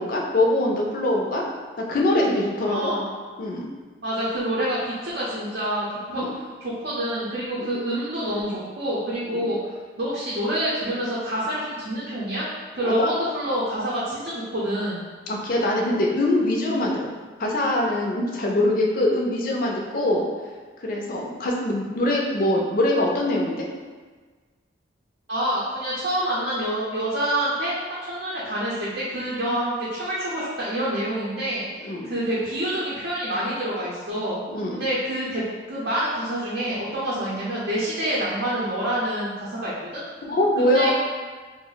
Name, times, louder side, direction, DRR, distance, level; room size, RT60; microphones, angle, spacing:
voice 1, 0.0-1.4 1.9-2.9 3.4-3.7 6.1-6.3 7.6-7.7 9.3-9.4 12.8-13.1 15.3-17.1 17.4-20.2 20.8-23.7 31.8-32.0 34.5-34.8 40.3-40.9, left 1 dB, 45° left, -1 dB, 0.4 m, -23 dB
voice 2, 2.7-3.0 4.0-5.9 6.1-9.6 10.0-12.5 12.7-15.0 25.3-27.7 28.0-31.6 32.0-34.4 34.7-40.0 40.6-40.9, right 1 dB, 60° right, -8 dB, 0.6 m, -27 dB
2.5 x 2.0 x 3.8 m, 1.4 s
head